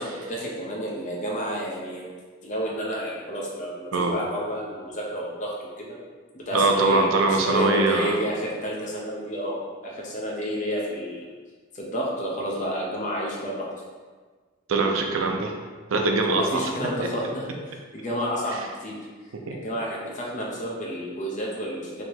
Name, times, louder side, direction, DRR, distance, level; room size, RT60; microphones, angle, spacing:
voice 1, 0.0-2.1 2.4-6.0 6.3-11.3 11.7-13.7 16.3-17.5 17.9-19.0 19.5-22.0, equal, 35° left, -4 dB, 0.6 m, -30 dB
voice 2, 6.5-8.2 14.7-15.5 15.9-16.6 18.5-18.7 19.5-19.6, right 3 dB, 75° right, 2 dB, 0.5 m, -22 dB
3.2 x 2.8 x 4.3 m, 1.4 s
head